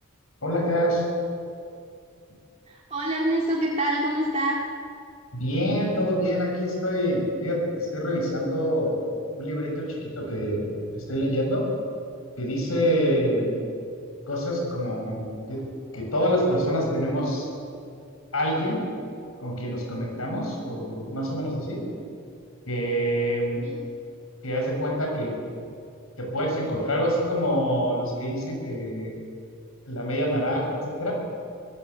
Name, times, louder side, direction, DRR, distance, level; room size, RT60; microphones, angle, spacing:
voice 1, 0.4-1.0 5.3-8.9 9.4-11.7 12.4-13.5 14.3-15.7 15.9-17.5 18.3-18.9 19.4-21.8 22.7-23.7 24.4-25.3 26.2-29.1 29.9-31.1, equal, 80° left, 0 dB, 6.5 m, -26 dB
voice 2, 2.7-4.6 23.6-23.8, right 1 dB, 30° right, -4 dB, 2.2 m, -26 dB
24.5 x 16.5 x 8.3 m, 2.4 s
head